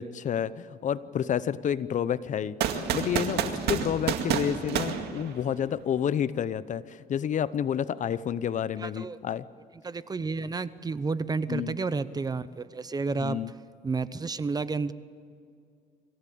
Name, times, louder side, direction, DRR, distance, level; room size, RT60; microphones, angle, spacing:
voice 1, 0.0-9.5 11.5-11.7 13.2-13.5, left 9 dB, 45° left, 17 dB, 0.8 m, -30 dB
sound 1, 2.6-5.8, right 8 dB, 75° right, 2.1 m, -29 dB
voice 2, 8.8-9.2 9.8-13.4 13.8-14.9, right 4 dB, 25° right, 15 dB, 0.8 m, -31 dB
26.5 x 16.0 x 8.7 m, 2.4 s
cardioid pair, 110°, 17 cm